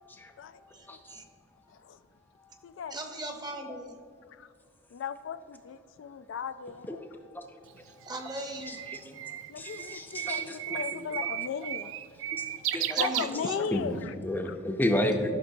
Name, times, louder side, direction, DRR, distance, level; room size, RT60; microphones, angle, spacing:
voice 1, 0.7-1.2 2.9-4.0 8.1-8.9 12.9-13.6, right 1 dB, 20° right, 3 dB, 0.8 m, -38 dB
voice 2, 2.6-3.0 4.4-4.5 4.9-7.0 9.5-11.9 12.7-14.1 14.4-14.6, left 7 dB, 65° left, 12 dB, 0.3 m, -37 dB
Bird, 7.7-13.9, right 12 dB, 65° right, 0.3 m, -34 dB
voice 3, 8.7-9.2 9.6-11.0 12.3-12.4 12.7-13.1 13.7-15.3, left 1 dB, 10° left, 4 dB, 0.5 m, -32 dB
12.0 x 6.0 x 2.7 m, 2.3 s
head